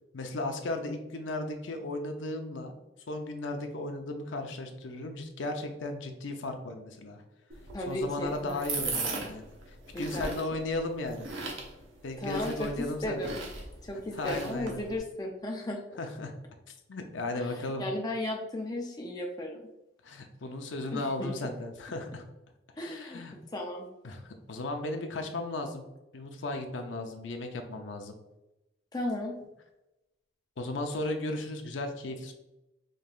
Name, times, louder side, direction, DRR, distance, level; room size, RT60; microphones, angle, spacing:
voice 1, 0.1-2.7 3.1-7.2 7.8-9.5 10.0-11.3 12.0-13.3 14.1-14.8 16.0-16.3 16.9-17.9 20.0-22.2 22.8-23.3 24.0-25.9 26.1-28.1 30.6-32.3, left 2 dB, 75° left, 4 dB, 0.6 m, -35 dB
sound 1, 7.5-15.0, right 3 dB, 90° right, 1.0 m, -39 dB
voice 2, 7.7-8.6 9.9-10.6 12.2-13.4 13.8-15.8 17.3-19.6 20.9-21.3 22.8-23.2 23.5-23.9 28.9-29.3, left 1 dB, 20° left, 0 dB, 0.5 m, -35 dB
5.3 x 3.2 x 2.4 m, 0.94 s
head